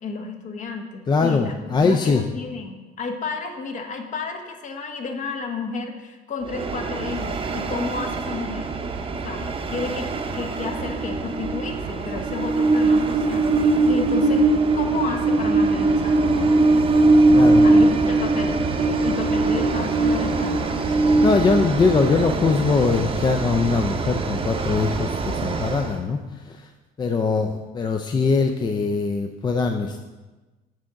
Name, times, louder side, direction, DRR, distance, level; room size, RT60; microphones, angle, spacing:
voice 1, 0.0-8.7 9.2-14.5 14.7-16.6 17.3-21.0, left 4 dB, 50° left, 5 dB, 1.0 m, -32 dB
voice 2, 1.1-2.2 17.3-17.7 21.2-26.7 27.0-30.0, left 4 dB, 25° left, 5 dB, 0.4 m, -22 dB
Train, 6.5-26.0, right 2 dB, 35° right, 0.7 m, -21 dB
7.6 x 3.6 x 5.7 m, 1.2 s
cardioid pair, 110°, 17 cm